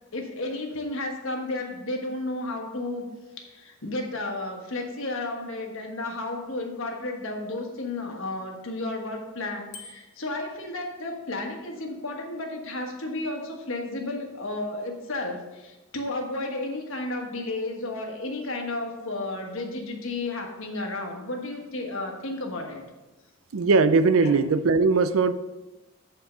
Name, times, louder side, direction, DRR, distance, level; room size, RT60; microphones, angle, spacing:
voice 1, 0.1-3.1 3.4-22.8 24.2-24.4, left 2 dB, 70° left, 1.4 m, -32 dB
Bicycle bell, 9.7-10.3, left 4 dB, 90° left, 1.2 m, -45 dB
voice 2, 23.5-25.3, right 4 dB, 85° right, 0.5 m, -20 dB
8.3 x 4.5 x 5.5 m
head